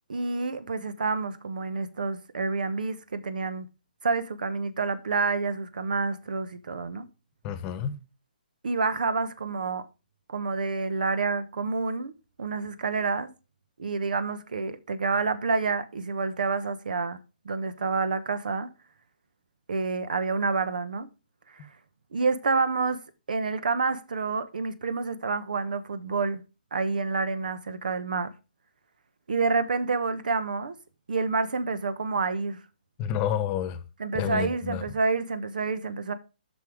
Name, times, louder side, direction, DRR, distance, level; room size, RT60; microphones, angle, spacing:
voice 1, 0.1-3.7 4.0-7.1 8.6-9.8 10.3-12.1 12.4-13.3 13.8-17.2 17.4-18.7 19.7-21.1 21.5-21.7 22.1-23.0 23.3-26.4 26.7-28.3 29.3-30.7 31.1-32.6 34.0-36.1, right 4 dB, 65° right, 1.1 m, -28 dB
voice 2, 7.4-8.0 33.0-33.8 34.1-34.8, left 9 dB, 25° left, 1.2 m, -29 dB
9.5 x 6.3 x 5.0 m
figure-of-eight pair, 140°, 5 cm